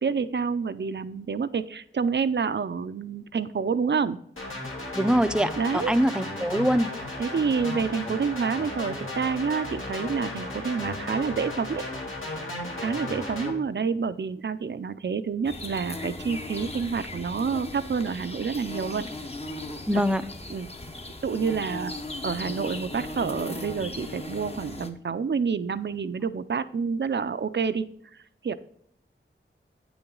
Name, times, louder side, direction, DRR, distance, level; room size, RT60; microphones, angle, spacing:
voice 1, 0.0-4.2 5.6-5.9 7.2-11.8 12.8-19.1 20.5-20.7 21.2-21.9 22.2-27.8 28.4-28.5, right 5 dB, 55° right, 13 dB, 0.5 m, -28 dB
sound 1, 4.4-13.5, left 2 dB, 70° left, 1.9 m, -35 dB
voice 2, 4.9-6.9 19.9-20.3, equal, 5° right, 11 dB, 0.5 m, -23 dB
sound 2, 15.4-24.9, left 2 dB, 30° left, 0.9 m, -37 dB
8.6 x 7.0 x 3.8 m, 0.67 s
wide cardioid pair, 65°, 21 cm